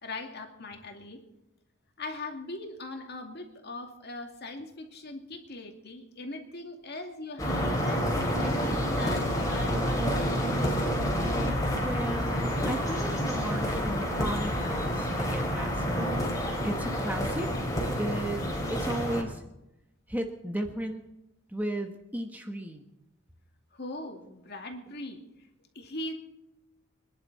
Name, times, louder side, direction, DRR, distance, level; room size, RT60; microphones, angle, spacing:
voice 1, 0.0-1.2 2.0-10.6 23.7-25.2 25.7-26.1, left 2 dB, 50° left, 3 dB, 2.4 m, -40 dB
sound 1, 7.4-19.2, equal, 15° left, 3.3 m, -29 dB
voice 2, 11.7-16.3 16.6-17.5 18.0-18.4 18.7-19.4 20.1-21.0 21.5-22.8, right 1 dB, 10° right, 4 dB, 1.1 m, -35 dB
25.5 x 11.0 x 4.2 m, 0.93 s
head